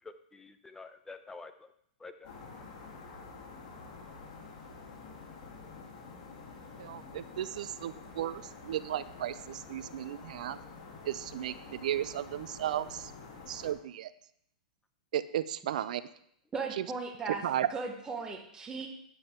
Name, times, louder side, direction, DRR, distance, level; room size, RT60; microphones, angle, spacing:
voice 1, 0.0-1.7 2.0-2.3, left 3 dB, 10° left, 9 dB, 0.7 m, -48 dB
sound 1, 2.2-13.7, left 4 dB, 50° left, 2.5 m, -48 dB
voice 2, 6.8-10.6 11.0-13.1 13.5-14.1 15.1-16.0 17.4-17.7, right 11 dB, 70° right, 16 dB, 0.5 m, -35 dB
voice 3, 16.5-17.4 17.7-18.9, right 4 dB, 15° right, 2 dB, 1.2 m, -37 dB
9.6 x 7.5 x 3.7 m, 0.69 s
hypercardioid pair, 120°, 4 cm